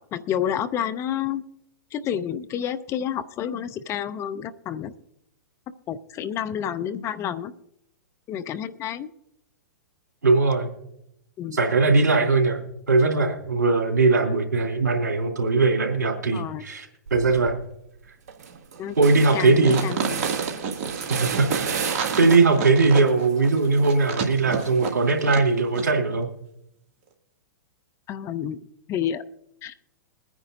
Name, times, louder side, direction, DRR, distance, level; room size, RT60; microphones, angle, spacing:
voice 1, 0.1-1.4 1.9-4.9 5.9-7.5 8.3-9.1 11.4-11.6 16.3-16.6 18.8-19.0 19.3-20.2 28.1-28.6 28.9-29.2 29.6-29.7, left 9 dB, 30° left, 12 dB, 0.7 m, -29 dB
voice 2, 10.2-10.7 11.5-12.6 12.9-17.5 19.0-19.9 21.1-21.8 22.1-26.3, right 3 dB, 80° right, 2 dB, 3.3 m, -20 dB
sound 1, 17.1-17.5 17.9-18.0 18.3-22.7 23.1-25.2, right 6 dB, 65° right, 1.3 m, -33 dB
sound 2, 19.6-25.5 25.7-25.8, right 6 dB, 40° right, 2.3 m, -30 dB
22.5 x 9.9 x 2.7 m, 0.78 s
hypercardioid pair, 110°, 9 cm